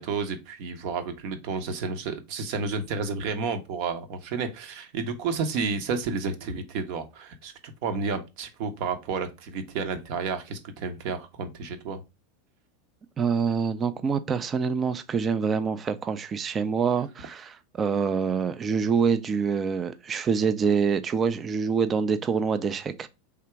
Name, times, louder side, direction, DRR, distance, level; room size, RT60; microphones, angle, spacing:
voice 1, 0.0-12.0, right 5 dB, 60° right, 0.9 m, -31 dB
voice 2, 13.2-23.1, right 6 dB, 25° right, 0.4 m, -26 dB
3.4 x 2.8 x 4.5 m
hypercardioid pair, 100°, 0 cm